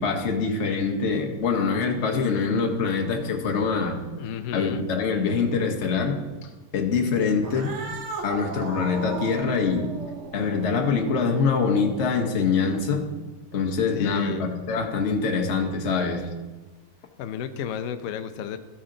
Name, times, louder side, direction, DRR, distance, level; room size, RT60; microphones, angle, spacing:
voice 1, 0.0-4.0 4.5-6.2 6.7-7.7 8.2-9.9 10.3-13.0 13.5-16.3, left 5 dB, 45° left, 3 dB, 1.1 m, -24 dB
voice 2, 4.2-4.8 13.9-14.5 17.2-18.6, left 9 dB, 85° left, 9 dB, 0.7 m, -32 dB
Cat, 7.4-13.0, right 3 dB, 55° right, 0.8 m, -37 dB
13.0 x 5.6 x 3.8 m, 1.2 s
omnidirectional pair, 2.2 m